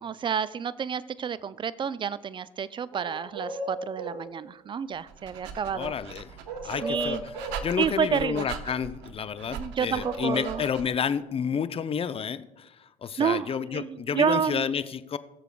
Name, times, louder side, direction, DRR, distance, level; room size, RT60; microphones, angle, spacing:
voice 1, 0.0-5.9 6.6-7.2 7.8-8.5 9.5-10.6 13.2-14.7, right 7 dB, 25° right, 17 dB, 0.4 m, -29 dB
sound 1, 2.9-4.2 6.5-7.6 9.9-10.7, right 1 dB, 80° right, 1.7 m, -35 dB
Dog, 4.9-11.0, right 7 dB, 60° right, 0.9 m, -41 dB
voice 2, 5.7-6.3 6.6-12.7 13.0-15.2, left 7 dB, 30° left, 14 dB, 0.5 m, -30 dB
20.5 x 6.9 x 2.3 m, 0.99 s
hypercardioid pair, 65°, 20 cm